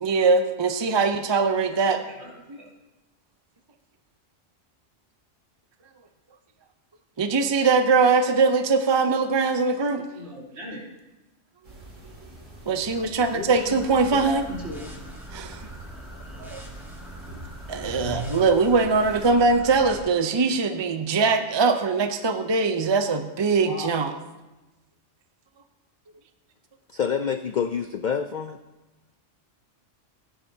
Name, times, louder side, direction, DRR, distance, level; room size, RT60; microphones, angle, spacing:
voice 1, 0.0-2.0 2.5-2.6 7.2-10.0 12.7-14.4 15.3-15.6 16.4-16.6 17.7-24.1, right 4 dB, 35° right, 8 dB, 0.5 m, -22 dB
voice 2, 1.7-2.7 10.1-10.9 13.3-13.8 14.1-14.8 23.6-24.0, left 1 dB, 60° right, -4 dB, 3.2 m, -37 dB
sound 1, 11.6-19.3, right 1 dB, 85° right, 3.2 m, -42 dB
sound 2, 13.6-20.0, right 1 dB, ahead, 2.1 m, -42 dB
voice 3, 26.9-28.6, left 7 dB, 65° left, 9 dB, 0.4 m, -27 dB
16.5 x 10.0 x 2.7 m, 1.1 s
omnidirectional pair, 1.3 m